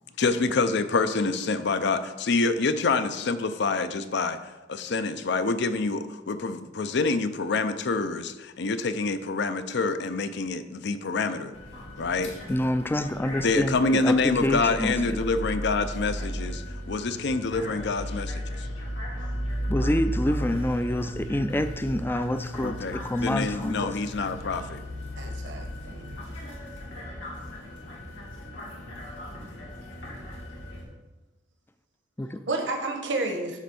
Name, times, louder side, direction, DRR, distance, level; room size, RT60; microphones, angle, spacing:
voice 1, 0.2-11.5 12.0-12.4 13.4-18.4 22.6-24.8, left 3 dB, 60° left, 11 dB, 0.5 m, -27 dB
sound 1, 11.5-30.8, equal, 80° left, 2.4 m, -35 dB
voice 2, 12.5-15.2 19.7-24.0 32.2-32.4, left 1 dB, 10° left, 11 dB, 0.3 m, -27 dB
voice 3, 25.2-26.2 32.5-33.6, right 2 dB, 70° right, 3 dB, 1.0 m, -31 dB
9.5 x 3.4 x 6.9 m, 1.2 s
head